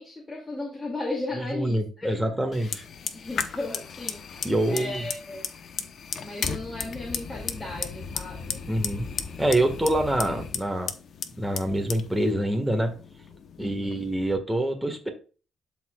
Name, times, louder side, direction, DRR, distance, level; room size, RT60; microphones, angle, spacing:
voice 1, 0.0-2.2 2.6-2.7 3.1-5.4 6.1-8.6 13.6-14.0, left 2 dB, 20° left, -2 dB, 2.4 m, -35 dB
voice 2, 1.5-2.8 4.4-5.1 8.6-9.0 9.4-10.9 11.4-12.9 13.6-15.1, right 1 dB, 10° right, 3 dB, 1.6 m, -26 dB
Fire, 2.5-14.4, left 6 dB, 55° left, 1.0 m, -35 dB
12.5 x 4.3 x 2.4 m, 0.36 s
cardioid pair, 90°, 0 cm